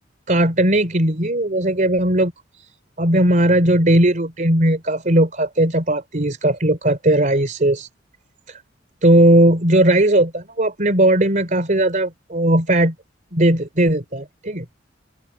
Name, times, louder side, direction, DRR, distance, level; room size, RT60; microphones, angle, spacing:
voice 1, 0.3-2.3 2.6-2.7 3.0-7.9 8.5-8.6 9.0-12.9 13.3-14.7, right 1 dB, 45° right, 3.6 m, -17 dB
open air
head